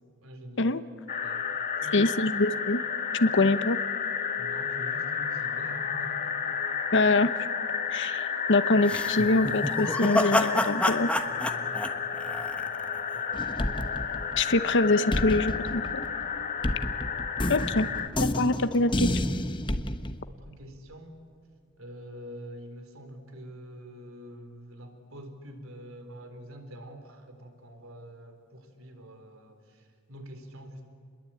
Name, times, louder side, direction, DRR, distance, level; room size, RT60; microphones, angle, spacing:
voice 1, 0.2-0.9 1.2-1.4 1.8-2.3 4.4-6.6 11.2-13.8 17.7-18.0 20.4-21.2 21.8-30.8, equal, 75° right, 6 dB, 3.9 m, -46 dB
sound 1, 1.1-18.1, left 7 dB, 40° left, 1.5 m, -32 dB
voice 2, 1.9-2.8 3.1-3.8 6.9-7.3 7.9-11.1 14.4-16.1 17.5-17.9 18.2-19.1, left 2 dB, 60° left, 12 dB, 1.0 m, -24 dB
sound 2, 8.9-13.0, left 1 dB, 5° left, 1.3 m, -28 dB
sound 3, 13.3-14.7 15.1-20.2, left 1 dB, 25° left, 1.1 m, -30 dB
29.5 x 22.0 x 8.8 m, 2.2 s
head